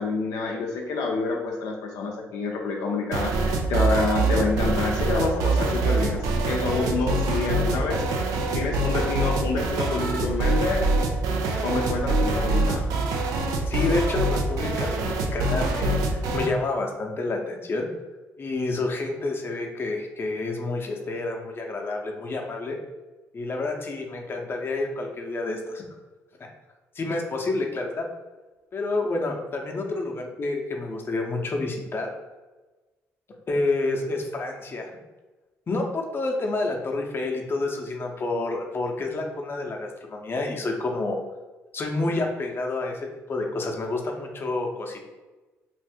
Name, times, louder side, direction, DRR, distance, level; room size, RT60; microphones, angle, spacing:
voice 1, 0.0-8.0 8.5-10.8 11.6-12.9, left 3 dB, 75° left, -1 dB, 0.5 m, -27 dB
sound 1, 3.1-16.5, right 2 dB, 80° right, 0.4 m, -25 dB
voice 2, 13.7-16.0 16.3-17.9 18.4-22.8 23.3-25.8 26.9-28.1 28.7-32.1 33.5-34.9 35.7-41.2 41.7-45.0, left 2 dB, 40° left, 1 dB, 0.7 m, -29 dB
2.5 x 2.5 x 3.5 m, 1.2 s
supercardioid pair, 65°, 6 cm